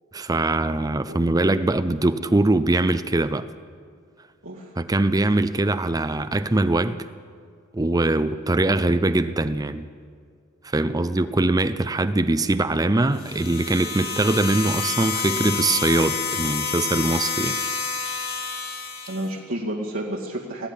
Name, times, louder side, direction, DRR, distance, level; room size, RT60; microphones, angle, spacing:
voice 1, 0.1-3.5 4.8-7.0 7.7-9.9 10.6-17.6, right 2 dB, 20° right, 12 dB, 0.5 m, -22 dB
voice 2, 4.4-4.7 19.1-20.7, right 1 dB, 85° right, -3 dB, 2.2 m, -30 dB
sound 1, 13.1-19.3, left 5 dB, 90° left, 3.5 m, -29 dB
20.0 x 15.5 x 10.0 m, 2.2 s
head